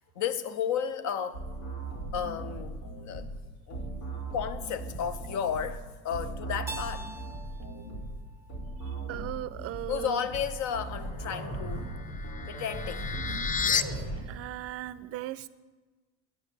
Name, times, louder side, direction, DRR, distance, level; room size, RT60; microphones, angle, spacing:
voice 1, 0.2-1.5 2.1-3.3 3.7-3.9 4.3-7.1 9.9-12.0 12.5-13.1, left 8 dB, 60° left, 0.8 m, -33 dB
sound 1, 1.3-14.2, right 2 dB, 90° left, 3.3 m, -38 dB
Keyboard (musical), 6.7-9.5, right 1 dB, 10° right, 0.7 m, -44 dB
voice 2, 9.1-10.2 14.3-15.5, right 15 dB, 45° right, 0.4 m, -37 dB
sound 2, 11.6-13.8, left 6 dB, 25° left, 0.4 m, -32 dB
9.5 x 7.8 x 6.3 m
supercardioid pair, 105°, 33 cm